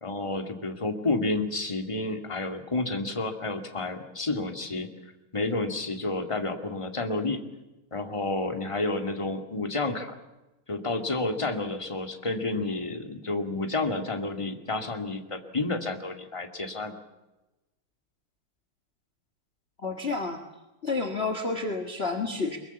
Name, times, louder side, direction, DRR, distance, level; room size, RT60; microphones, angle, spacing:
voice 1, 0.0-4.9 5.3-7.4 7.9-10.1 10.7-16.9, left 2 dB, 15° left, 5 dB, 2.3 m, -30 dB
voice 2, 19.8-20.4 20.8-22.6, left 3 dB, 30° left, 5 dB, 1.9 m, -30 dB
23.5 x 23.0 x 7.1 m, 1.0 s
omnidirectional pair, 2.3 m